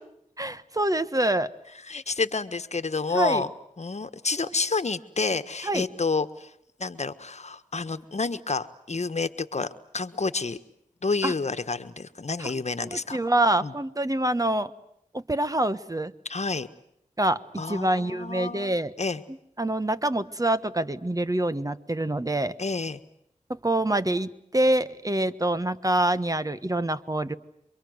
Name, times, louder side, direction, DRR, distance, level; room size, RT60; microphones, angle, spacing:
voice 1, 0.4-1.5 3.1-3.4 5.6-5.8 11.2-11.3 12.4-12.5 12.9-14.7 15.1-16.1 17.2-18.9 19.6-22.5 23.5-27.3, right 1 dB, 25° right, 12 dB, 1.4 m, -26 dB
voice 2, 1.8-3.5 3.8-6.5 6.8-10.6 11.0-13.2 13.6-13.7 16.3-16.7 17.6-19.2 22.6-23.0, left 4 dB, 55° left, 10 dB, 1.5 m, -29 dB
28.5 x 24.5 x 8.1 m, 0.75 s
wide cardioid pair, 55°, 13 cm